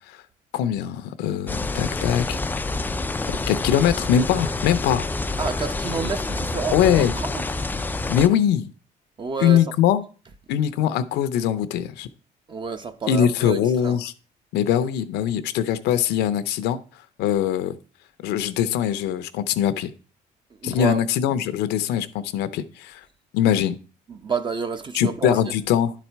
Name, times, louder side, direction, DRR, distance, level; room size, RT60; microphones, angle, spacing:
voice 1, 0.5-2.4 3.3-5.1 6.7-7.1 8.1-8.7 9.4-10.0 10.5-12.1 13.1-14.1 14.5-16.8 17.2-17.7 18.2-19.9 20.6-23.0 23.3-23.8 24.9-25.9, left 10 dB, 85° left, 0.7 m, -22 dB
sound 1, 1.5-8.3, left 2 dB, 10° left, 0.4 m, -27 dB
voice 2, 5.4-7.4 9.2-9.6 12.5-14.0 20.6-21.0 24.1-25.4, right 5 dB, 30° right, 0.8 m, -29 dB
10.5 x 4.2 x 4.5 m
cardioid pair, 110°, 17 cm